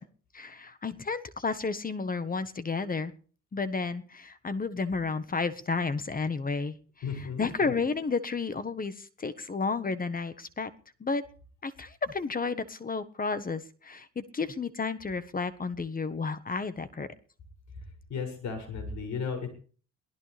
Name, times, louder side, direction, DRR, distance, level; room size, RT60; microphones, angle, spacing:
voice 1, 0.3-3.1 3.5-10.7 11.0-11.2 11.6-17.1, left 4 dB, 30° left, 13 dB, 1.4 m, -32 dB
voice 2, 7.0-7.5 18.1-19.5, left 5 dB, 75° left, 6 dB, 7.1 m, -34 dB
23.0 x 17.0 x 3.4 m, 0.42 s
cardioid pair, 100°, 29 cm